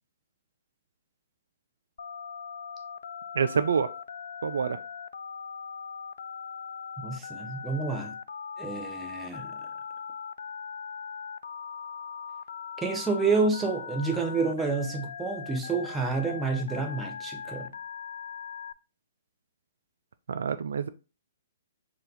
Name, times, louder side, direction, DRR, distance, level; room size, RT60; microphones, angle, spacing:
Telephone, 2.0-18.7, left 6 dB, 70° left, 0.3 m, -40 dB
voice 1, 3.3-3.9 4.4-4.8 20.3-20.9, right 6 dB, 70° right, 0.3 m, -27 dB
voice 2, 7.0-8.1 8.6-9.6 12.8-17.7, right 4 dB, 10° right, 0.7 m, -29 dB
4.4 x 2.5 x 3.9 m
hypercardioid pair, 130°, 0 cm